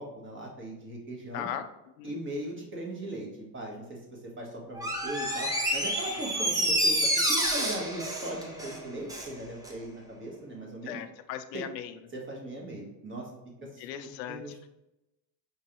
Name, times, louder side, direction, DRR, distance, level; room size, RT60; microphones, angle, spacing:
voice 1, 0.0-1.5 2.0-3.3 3.5-11.0 11.5-11.6 12.1-13.3 13.6-14.7, right 1 dB, 25° right, -1 dB, 1.4 m, -39 dB
voice 2, 1.3-1.6 2.0-2.1 10.9-11.9 13.8-14.4, left 10 dB, 85° left, 9 dB, 0.6 m, -37 dB
Door, 4.7-9.3 9.6-9.7, right 1 dB, 10° right, 0.7 m, -28 dB
5.1 x 3.1 x 2.9 m, 0.92 s
supercardioid pair, 110°, 48 cm